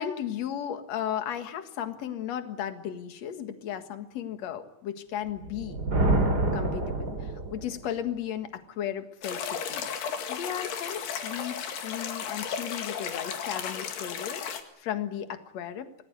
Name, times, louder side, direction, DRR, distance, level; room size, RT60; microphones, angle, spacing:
voice 1, 0.0-9.9 10.3-15.9, left 10 dB, 50° left, 8 dB, 2.4 m, -35 dB
Thunder, 5.4-7.9, right 2 dB, 30° right, 2.8 m, -27 dB
sound 1, 9.2-14.6, left 7 dB, 85° left, 4.1 m, -34 dB
27.5 x 19.5 x 8.1 m, 0.80 s
omnidirectional pair, 4.6 m